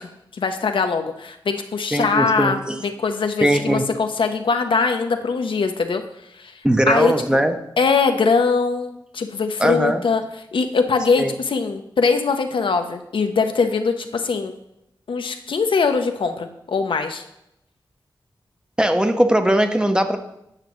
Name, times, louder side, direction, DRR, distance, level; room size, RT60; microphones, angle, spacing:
voice 1, 0.0-6.0 6.3-6.6 6.9-7.1 7.8-10.2 10.5-14.5 15.1-17.2, left 4 dB, 75° left, 6 dB, 0.6 m, -22 dB
voice 2, 1.9-2.8 3.4-3.9 6.6-7.6 9.6-10.0 11.1-11.3 18.8-20.2, right 1 dB, 10° right, 7 dB, 0.6 m, -19 dB
8.9 x 5.8 x 3.0 m, 0.83 s
cardioid pair, 60°, 9 cm